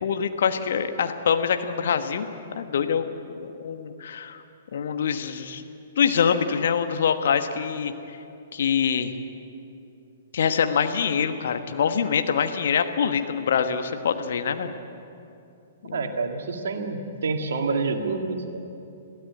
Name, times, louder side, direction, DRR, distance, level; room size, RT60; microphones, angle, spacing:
voice 1, 0.0-2.3 2.5-3.0 3.3-4.4 4.7-5.6 6.0-7.9 8.5-9.1 10.3-14.7 15.8-16.1, left 7 dB, 55° left, 8 dB, 1.3 m, -24 dB
voice 2, 15.9-18.7, right 4 dB, 60° right, 4 dB, 2.0 m, -28 dB
22.0 x 15.5 x 8.3 m, 2.7 s
figure-of-eight pair, 115°, 0 cm